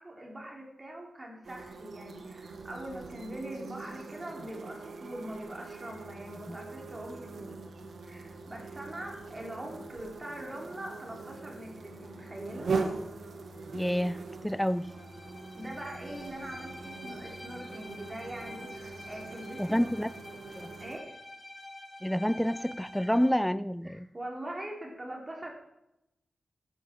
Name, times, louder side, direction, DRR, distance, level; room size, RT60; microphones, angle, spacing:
voice 1, 0.0-7.6 8.0-12.7 15.6-20.0 20.8-21.2 23.8-25.5, right 1 dB, 25° right, 0 dB, 3.7 m, -42 dB
sound 1, 1.4-21.0, right 4 dB, 75° right, 1.9 m, -41 dB
sound 2, 5.8-20.9, left 2 dB, 85° left, 2.5 m, -55 dB
voice 2, 13.7-14.9 19.6-20.1 20.6-20.7 22.0-24.1, equal, 5° left, 16 dB, 0.5 m, -28 dB
Bowed string instrument, 14.8-23.4, left 2 dB, 25° left, 6.0 m, -48 dB
13.5 x 12.0 x 4.6 m, 0.87 s
wide cardioid pair, 100°, 0 cm